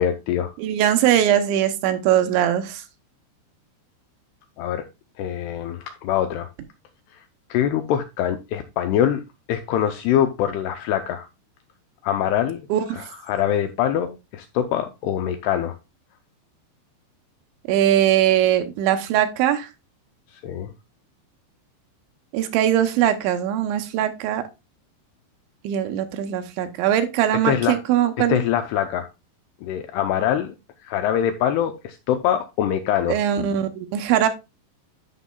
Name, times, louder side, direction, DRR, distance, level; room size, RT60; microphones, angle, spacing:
voice 1, 0.0-0.5 4.6-4.9 5.2-6.5 7.5-9.2 9.5-11.3 12.0-15.8 20.4-20.7 27.4-27.8 28.3-29.1 29.6-30.5 30.8-33.2, left 10 dB, 80° left, 2.4 m, -24 dB
voice 2, 0.6-2.8 12.7-13.0 17.7-19.7 22.3-24.4 25.6-28.4 33.1-34.3, right 11 dB, 80° right, 3.1 m, -21 dB
13.5 x 5.7 x 2.3 m
omnidirectional pair, 5.4 m